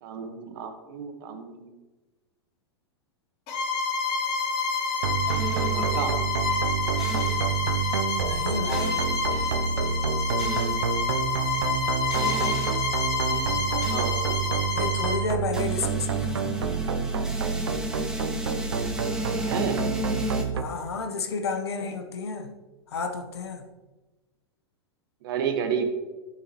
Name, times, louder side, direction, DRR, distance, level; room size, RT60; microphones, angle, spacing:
voice 1, 0.0-1.7 5.7-6.1 7.2-7.4 12.2-12.4 13.2-14.9 19.4-19.8 25.2-25.9, right 7 dB, 60° right, 6 dB, 1.5 m, -33 dB
Bowed string instrument, 3.5-15.3, left 4 dB, 50° left, 3.0 m, -28 dB
sound 1, 5.0-20.6, right 7 dB, 85° right, 0.7 m, -28 dB
sound 2, 5.3-6.1 7.0-7.5 8.7-9.6 10.4-10.8 12.1-12.9 13.8-14.1 15.5-20.4, left 1 dB, 5° right, 1.5 m, -34 dB
voice 2, 8.2-9.0 14.7-16.6 20.5-22.5 22.9-23.7, left 4 dB, 80° left, 5 dB, 1.2 m, -31 dB
12.0 x 7.2 x 3.1 m, 1.2 s
hypercardioid pair, 100°, 13 cm